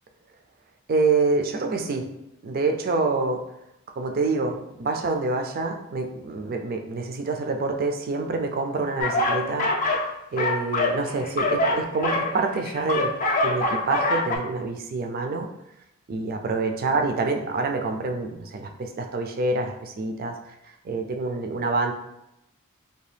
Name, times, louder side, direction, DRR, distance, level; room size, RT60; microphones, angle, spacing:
voice 1, 0.9-2.1 2.4-3.4 4.0-11.6 11.9-13.1 13.4-15.5 16.1-20.3 20.8-21.9, right 3 dB, 40° right, 4 dB, 0.3 m, -26 dB
sound 1, 9.0-10.1 10.4-14.4, left 2 dB, 35° left, 0.4 m, -24 dB
2.7 x 2.2 x 3.2 m, 0.84 s
head